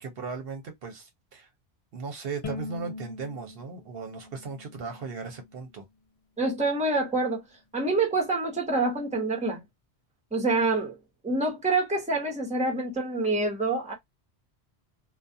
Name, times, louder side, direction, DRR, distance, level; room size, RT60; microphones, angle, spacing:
voice 1, 0.0-1.5 1.9-5.9, right 5 dB, 65° right, 0.9 m, -37 dB
Bowed string instrument, 2.4-5.7, left 3 dB, 55° left, 0.4 m, -41 dB
voice 2, 6.4-7.4 7.7-9.6 10.3-11.0 11.2-13.9, right 3 dB, 5° right, 0.8 m, -26 dB
2.3 x 2.2 x 2.6 m
omnidirectional pair, 1.1 m